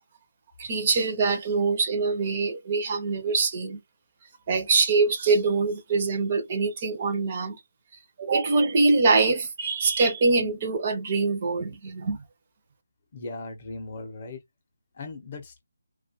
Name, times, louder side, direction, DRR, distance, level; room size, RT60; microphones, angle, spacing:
voice 1, 0.6-3.8 4.5-7.6 8.2-12.2, right 4 dB, 25° right, 0.4 m, -24 dB
voice 2, 13.1-14.4 14.9-15.6, left 3 dB, 30° left, 0.5 m, -38 dB
2.5 x 2.2 x 2.7 m
figure-of-eight pair, 170°, 0 cm